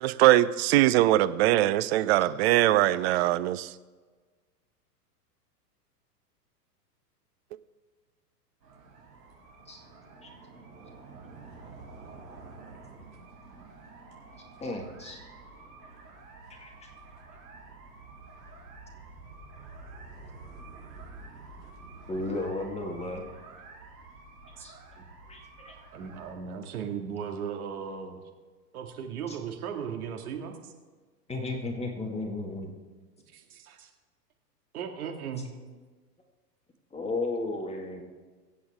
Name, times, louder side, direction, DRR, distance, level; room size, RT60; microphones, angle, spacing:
voice 1, 0.0-3.7, right 15 dB, 40° right, 14 dB, 0.6 m, -22 dB
sound 1, 8.6-26.3, right 3 dB, 85° right, 4.9 m, -49 dB
voice 2, 14.6-15.2 16.6-16.9 22.1-23.3 24.6-24.7 25.3-25.7 29.3-29.4 31.3-32.7 36.9-38.0, left 2 dB, 15° left, 1 dB, 2.1 m, -34 dB
voice 3, 25.9-28.2 28.7-30.7 33.3-33.9 34.7-35.5, right 7 dB, 60° right, 3 dB, 2.4 m, -37 dB
24.0 x 8.6 x 3.7 m, 1.4 s
hypercardioid pair, 105°, 49 cm